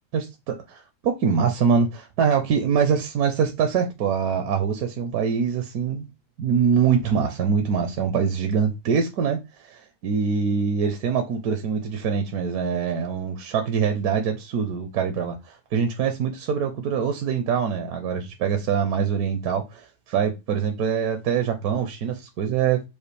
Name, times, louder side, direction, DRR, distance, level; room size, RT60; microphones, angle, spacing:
voice 1, 0.1-6.1 6.4-22.8, right 6 dB, 70° right, 1.1 m, -24 dB
5.0 x 2.5 x 3.2 m
omnidirectional pair, 1.7 m